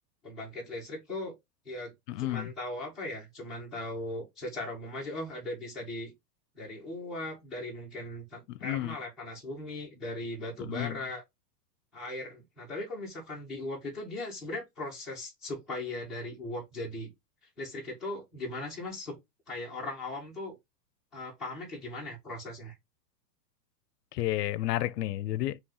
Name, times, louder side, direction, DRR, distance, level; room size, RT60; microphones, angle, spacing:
voice 1, 0.2-1.3 1.6-1.9 2.2-6.1 6.5-11.2 11.9-17.1 17.6-19.2 19.5-20.5 21.1-22.8, left 1 dB, ahead, 0.6 m, -38 dB
voice 2, 2.1-2.5 8.5-9.0 10.6-11.0 24.1-25.6, left 14 dB, 75° left, 0.5 m, -31 dB
3.1 x 2.9 x 3.7 m
supercardioid pair, 170°, 48 cm